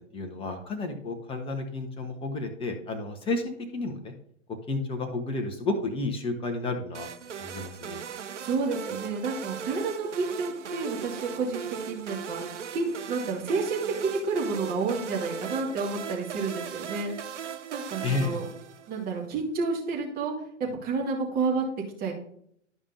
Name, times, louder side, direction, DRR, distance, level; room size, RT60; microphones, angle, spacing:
voice 1, 0.1-4.1 4.7-7.1 7.4-8.0 18.0-18.4, left 3 dB, 15° left, 5 dB, 1.2 m, -31 dB
sound 1, 6.9-19.1, right 7 dB, 70° right, 0.8 m, -38 dB
voice 2, 8.4-12.4 12.7-17.1 17.7-18.4 18.9-20.3 20.6-21.7 22.0-22.1, right 4 dB, 25° right, -1 dB, 2.3 m, -30 dB
12.5 x 5.3 x 2.8 m, 0.66 s
figure-of-eight pair, 110°, 38 cm